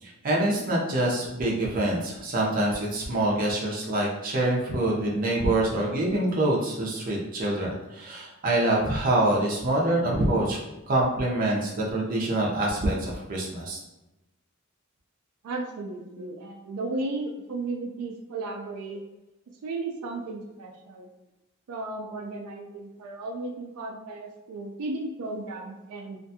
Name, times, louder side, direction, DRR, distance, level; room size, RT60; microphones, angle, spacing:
voice 1, 0.0-10.6 10.9-13.8, right 1 dB, 40° right, -3 dB, 0.6 m, -25 dB
voice 2, 15.4-19.0 19.6-21.1 21.7-26.2, right 2 dB, 85° right, 1 dB, 0.4 m, -34 dB
2.5 x 2.2 x 2.7 m, 0.99 s
head